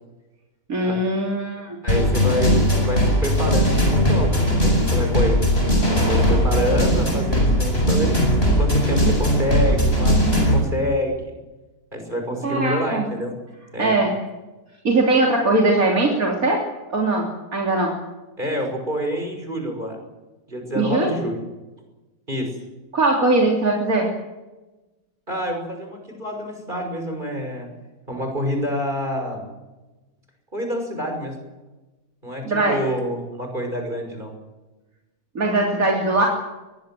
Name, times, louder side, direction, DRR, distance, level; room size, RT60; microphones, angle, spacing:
voice 1, 0.7-1.8 12.4-13.1 13.8-14.1 14.8-16.6 16.9-17.9 20.8-21.2 22.9-24.1 32.4-32.8 35.4-36.3, right 2 dB, 60° right, -1 dB, 3.8 m, -20 dB
voice 2, 1.8-5.3 5.9-8.1 8.5-11.3 11.9-13.4 13.7-14.0 18.4-20.0 20.5-21.4 22.3-22.5 25.3-27.7 28.1-29.5 30.5-31.4 32.2-34.3, equal, 30° right, 4 dB, 6.1 m, -27 dB
sound 1, 1.9-10.6, equal, 40° left, 7.5 m, -19 dB
23.0 x 21.5 x 7.7 m, 1.1 s
omnidirectional pair, 1.7 m